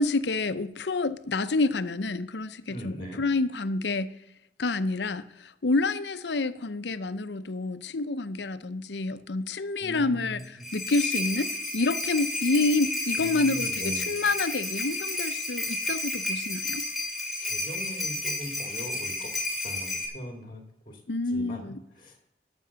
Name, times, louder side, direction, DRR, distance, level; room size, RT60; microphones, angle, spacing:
voice 1, 0.0-4.1 4.6-10.4 10.7-16.8 21.1-21.8, left 3 dB, 75° left, 13 dB, 0.7 m, -28 dB
voice 2, 2.7-3.2 9.8-10.7 13.2-14.1 17.4-22.3, equal, 25° left, 5 dB, 2.0 m, -41 dB
sound 1, 10.4-20.1, left 2 dB, ahead, 2.6 m, -31 dB
13.0 x 6.2 x 6.9 m, 0.83 s
head